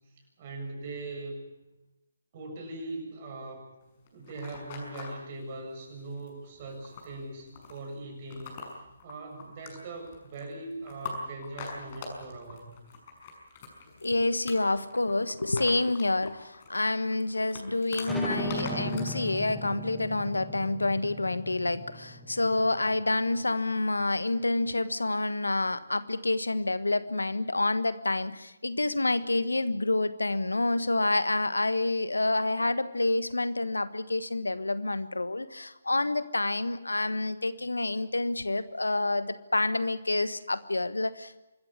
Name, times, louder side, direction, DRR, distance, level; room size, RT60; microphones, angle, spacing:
voice 1, 0.4-1.5 2.3-3.6 4.1-8.6 9.0-12.8, right 2 dB, 40° right, 3 dB, 7.3 m, -40 dB
sound 1, 3.8-5.2 5.8-6.3 6.5-19.1, left 4 dB, 35° left, 6.2 m, -44 dB
voice 2, 14.0-41.4, left 2 dB, 85° left, 14 dB, 1.4 m, -28 dB
sound 2, 18.0-23.3, equal, ahead, 2.0 m, -38 dB
25.5 x 14.0 x 9.8 m, 0.98 s
figure-of-eight pair, 145°, 0 cm